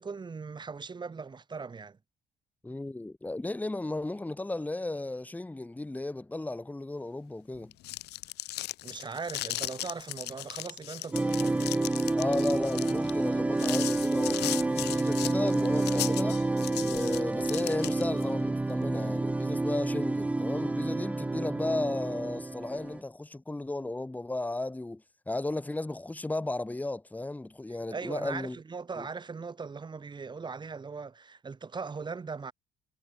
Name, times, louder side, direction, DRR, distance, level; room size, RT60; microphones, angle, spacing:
voice 1, 0.0-2.0 8.8-11.7 27.9-32.5, right 5 dB, 25° right, 3.2 m, -39 dB
voice 2, 2.6-7.7 12.2-16.4 16.8-28.6 29.0-29.1, left 2 dB, 10° left, 1.7 m, -34 dB
sound 1, 7.6-18.2, left 17 dB, 80° left, 1.9 m, -37 dB
sound 2, 11.1-23.0, right 2 dB, 10° right, 0.3 m, -29 dB
cardioid pair, 110°, 17 cm